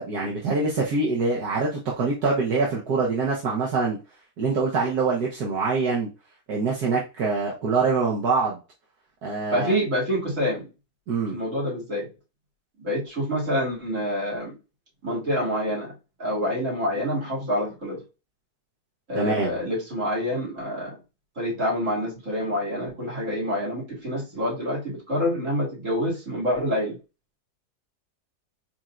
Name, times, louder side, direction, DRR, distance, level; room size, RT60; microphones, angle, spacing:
voice 1, 0.0-4.0 4.4-6.1 6.5-8.6 9.2-9.7 11.1-11.4 19.1-19.5, right 4 dB, 70° right, -3 dB, 1.6 m, -24 dB
voice 2, 9.5-10.7 11.3-12.1 12.8-14.6 15.0-15.9 16.2-18.0 19.1-21.0 21.4-27.0, equal, 50° right, -5 dB, 3.0 m, -27 dB
4.6 x 4.3 x 2.5 m, 0.29 s
omnidirectional pair, 1.7 m